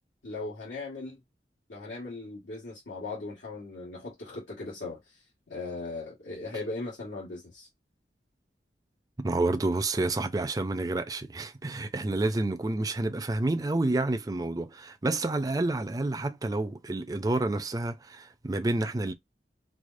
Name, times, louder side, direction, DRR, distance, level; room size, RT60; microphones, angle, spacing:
voice 1, 0.2-1.2 1.7-5.2 5.5-7.7, left 3 dB, 90° left, 1.5 m, -38 dB
voice 2, 9.2-19.1, right 2 dB, 20° right, 0.4 m, -29 dB
4.7 x 2.0 x 2.5 m
head